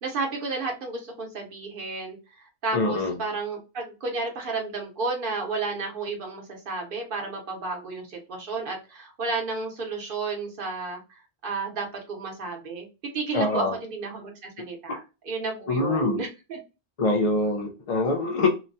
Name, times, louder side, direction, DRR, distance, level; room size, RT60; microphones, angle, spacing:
voice 1, 0.0-12.9 13.1-16.6, right 3 dB, 55° right, 1.0 m, -32 dB
voice 2, 2.7-3.1 13.3-13.7 15.7-16.2 17.0-18.5, left 2 dB, 45° left, 0.5 m, -24 dB
2.9 x 2.2 x 2.6 m
omnidirectional pair, 1.1 m